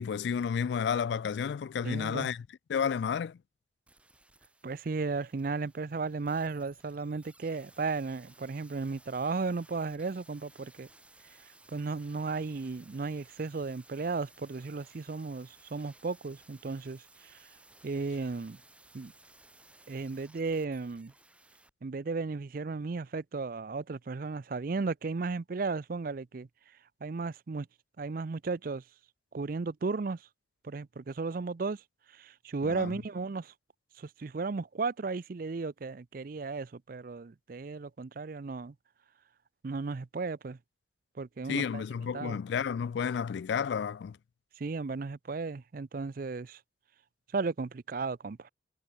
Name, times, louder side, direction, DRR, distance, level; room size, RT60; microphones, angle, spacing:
voice 1, 0.0-3.4 32.6-33.0 41.5-44.2, left 7 dB, 65° left, 0.3 m, -31 dB
voice 2, 1.8-2.3 4.6-10.9 11.2-17.5 17.8-18.6 18.9-19.1 19.9-21.1 21.8-26.5 27.0-27.7 28.0-28.8 29.3-30.3 30.6-31.8 32.1-33.5 34.0-38.7 39.6-40.6 41.2-41.8 42.1-42.4 44.6-46.6 47.3-48.5, right 4 dB, 50° right, 0.5 m, -35 dB
sound 1, 3.9-21.7 22.0-22.1, right 2 dB, 5° right, 4.5 m, -59 dB
head